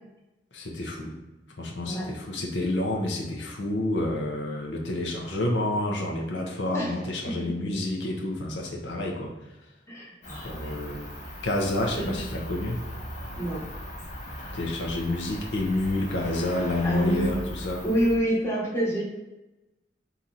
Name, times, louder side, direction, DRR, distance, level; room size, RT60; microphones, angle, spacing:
voice 1, 0.5-1.1 1.6-9.3 10.4-11.1 11.4-12.8 14.5-17.8, left 1 dB, 80° left, -1 dB, 0.7 m, -29 dB
voice 2, 9.9-10.7 11.9-12.2 13.4-13.6 16.8-17.4 17.8-19.0, right 1 dB, 15° left, -5 dB, 1.0 m, -27 dB
Cricket, 10.2-18.2, equal, 45° left, 0.9 m, -39 dB
4.1 x 2.9 x 3.8 m, 1.0 s
head